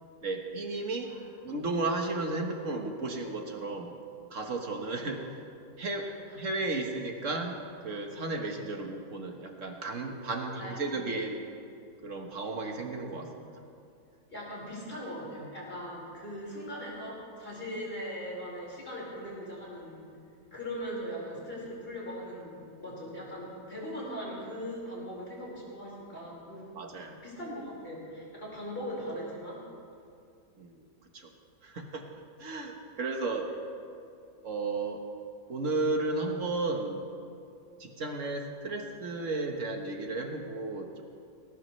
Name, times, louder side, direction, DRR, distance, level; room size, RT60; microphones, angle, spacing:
voice 1, 0.2-1.1 1.4-4.0 4.3-5.2 5.8-6.1 6.3-11.4 12.0-13.5 26.7-27.2 30.6-30.8 31.1-31.3 31.6-32.1 32.4-33.5 34.4-35.0 35.5-37.0 37.8-41.0, right 3 dB, 45° right, 3 dB, 1.6 m, -34 dB
voice 2, 6.0-6.4 10.6-11.3 14.3-20.1 20.5-26.9 27.2-29.6, equal, 30° left, -6 dB, 5.0 m, -40 dB
19.5 x 18.5 x 3.2 m, 2.5 s
omnidirectional pair, 1.9 m